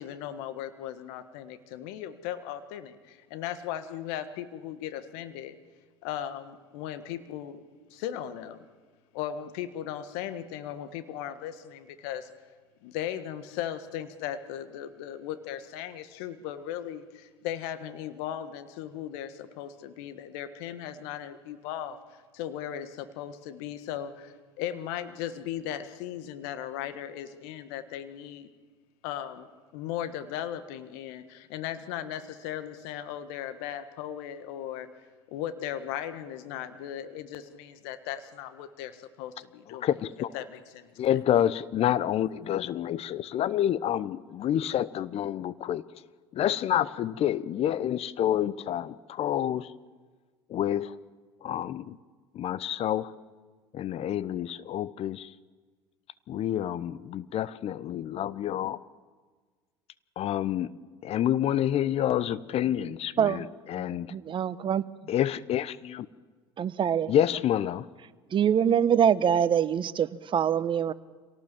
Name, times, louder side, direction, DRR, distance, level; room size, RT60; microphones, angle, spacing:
voice 1, 0.0-5.5 6.0-7.6 7.9-8.6 9.1-12.3 12.8-28.5 29.0-29.5 29.7-34.9 35.3-39.9 40.3-41.2, left 10 dB, 65° left, 10 dB, 1.5 m, -37 dB
voice 2, 39.8-40.3 41.0-45.8 46.3-49.7 50.5-50.9 51.4-52.0 52.3-53.1 53.7-55.3 56.3-58.8 60.2-60.7 61.0-64.1 65.1-66.1 67.1-67.8, left 11 dB, 45° left, 17 dB, 0.9 m, -28 dB
voice 3, 64.1-64.8 66.6-67.1 68.3-70.9, right 8 dB, 35° right, 15 dB, 1.0 m, -24 dB
26.5 x 18.0 x 7.5 m, 1.4 s
hypercardioid pair, 70°, 14 cm